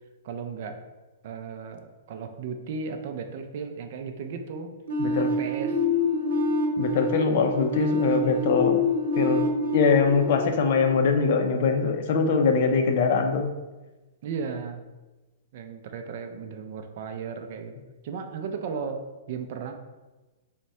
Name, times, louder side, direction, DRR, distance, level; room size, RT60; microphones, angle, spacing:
voice 1, 0.2-0.8 1.2-4.7 5.1-5.8 14.2-14.9 15.5-17.7 18.0-19.7, right 5 dB, 45° right, 6 dB, 0.4 m, -35 dB
sound 1, 4.9-11.6, left 2 dB, 80° right, 1.0 m, -27 dB
voice 2, 6.8-8.8 9.2-9.4 9.7-13.5, left 5 dB, 45° left, 5 dB, 0.4 m, -22 dB
3.5 x 2.1 x 4.1 m, 1.1 s
hypercardioid pair, 165°, 0 cm